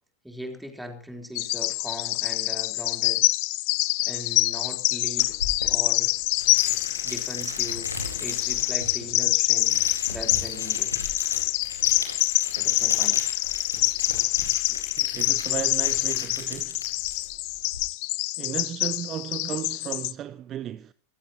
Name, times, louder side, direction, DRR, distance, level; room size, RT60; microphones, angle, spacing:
voice 1, 0.2-3.2 4.0-5.4 5.7-6.1 7.0-10.9 12.6-13.2 14.7-14.8, equal, ahead, 3.6 m, -39 dB
Bird vocalization bird call bird song, 1.4-20.1, left 26 dB, 45° left, 0.6 m, -26 dB
sound 1, 5.2-17.8, left 2 dB, 85° left, 4.1 m, -37 dB
voice 2, 15.0-16.8 18.4-20.9, right 11 dB, 30° right, 0.6 m, -34 dB
23.5 x 15.5 x 2.9 m
figure-of-eight pair, 90°, 0 cm